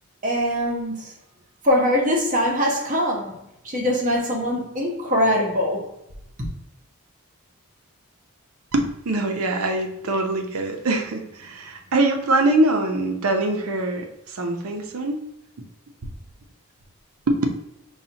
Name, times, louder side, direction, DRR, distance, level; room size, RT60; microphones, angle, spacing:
voice 1, 0.2-1.1 1.6-5.9 6.4-6.5, equal, 35° right, 0.8 m, -22 dB
voice 2, 8.7-15.2 17.3-17.4, right 2 dB, 75° right, 0.7 m, -23 dB
5.5 x 2.4 x 2.8 m
head